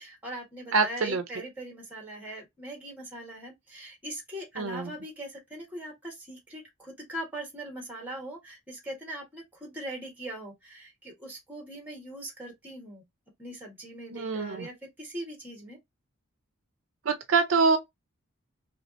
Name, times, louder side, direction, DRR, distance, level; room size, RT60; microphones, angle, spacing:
voice 1, 0.0-13.0 13.4-15.8, right 1 dB, 10° right, 1.3 m, -41 dB
voice 2, 0.7-1.2 4.6-4.9 14.1-14.6 17.1-17.8, right 4 dB, 70° right, 0.5 m, -25 dB
3.3 x 2.8 x 2.5 m
head